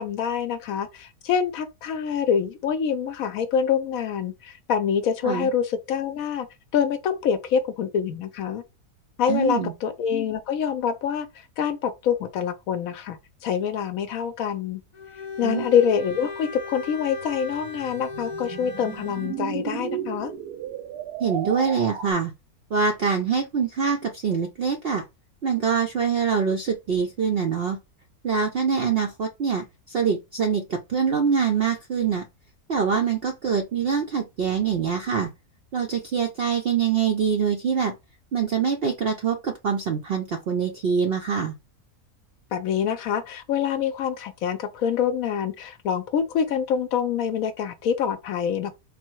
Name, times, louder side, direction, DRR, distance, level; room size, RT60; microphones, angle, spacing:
voice 1, 0.0-6.5 6.7-8.6 9.2-11.3 11.6-14.8 15.4-20.3 42.5-48.7, left 7 dB, 70° left, 0.9 m, -25 dB
voice 2, 9.3-9.7 15.4-15.7 21.2-22.3 22.7-25.0 25.4-27.8 28.2-32.2 32.7-35.3 35.7-37.9 38.3-41.5, right 6 dB, 65° right, 0.6 m, -24 dB
Bowed string instrument, 14.9-19.4, left 4 dB, 45° left, 0.6 m, -37 dB
sound 1, 17.2-22.1, right 8 dB, 85° right, 1.3 m, -34 dB
4.2 x 2.1 x 4.4 m
omnidirectional pair, 1.6 m